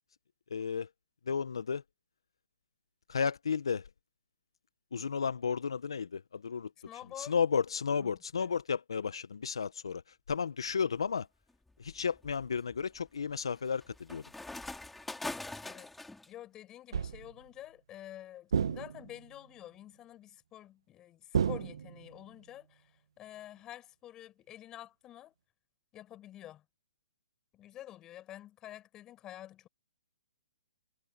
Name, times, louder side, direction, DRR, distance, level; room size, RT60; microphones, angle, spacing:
voice 1, 0.5-0.9 1.3-1.8 3.1-3.9 4.9-6.7 7.2-11.3 11.8-14.2, left 6 dB, 75° left, 1.1 m, -33 dB
voice 2, 6.8-7.3 8.0-8.5 15.6-15.9 16.3-25.3 25.9-26.6 27.5-29.7, left 13 dB, 20° left, 6.0 m, -49 dB
sound 1, 10.7-11.1 11.7-16.3, left 2 dB, 5° left, 3.2 m, -44 dB
sound 2, 16.9-17.4 18.5-19.3 21.3-22.2, right 7 dB, 70° right, 1.0 m, -32 dB
hypercardioid pair, 140°, 3 cm